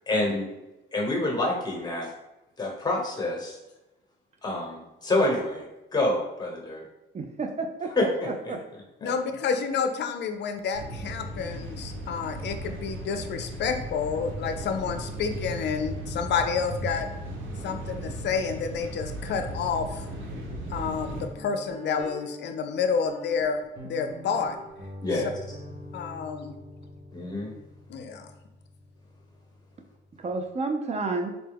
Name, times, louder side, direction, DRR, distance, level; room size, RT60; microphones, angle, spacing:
voice 1, 0.1-0.5 0.9-2.1 2.6-3.6 4.4-6.8 8.0-8.1 9.0-9.1 25.0-25.4 27.1-27.5, left 2 dB, 20° left, -1 dB, 1.1 m, -27 dB
voice 2, 7.1-7.9 8.2-8.6 30.2-31.3, right 3 dB, 35° right, 4 dB, 0.5 m, -30 dB
voice 3, 9.0-17.1 17.6-20.1 20.7-23.6 23.8-24.6 25.9-26.5 27.9-28.3, left 6 dB, 60° left, 7 dB, 0.5 m, -29 dB
sound 1, 10.7-21.3, right 1 dB, 85° right, 0.7 m, -36 dB
Guitar, 21.0-30.5, left 1 dB, 55° right, 1.0 m, -44 dB
4.0 x 2.2 x 3.4 m, 0.96 s
cardioid pair, 90°, 20 cm